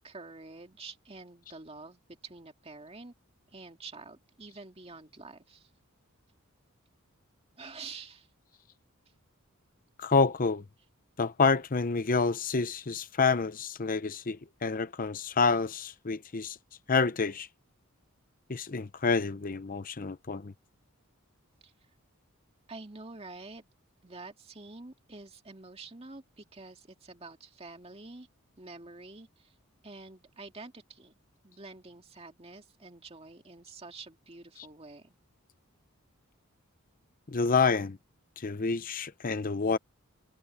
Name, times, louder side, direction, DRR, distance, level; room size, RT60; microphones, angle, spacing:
voice 1, 0.0-3.1 3.5-5.7 7.6-8.3 21.6-21.7 22.7-23.6 24.0-28.3 28.6-29.5 29.8-31.1 31.4-35.2, right 3 dB, 30° right, 2.2 m, -47 dB
voice 2, 10.0-10.6 11.2-16.6 16.9-17.5 18.5-20.5 34.6-34.7 37.3-38.0 38.4-39.8, left 4 dB, 40° left, 0.7 m, -28 dB
head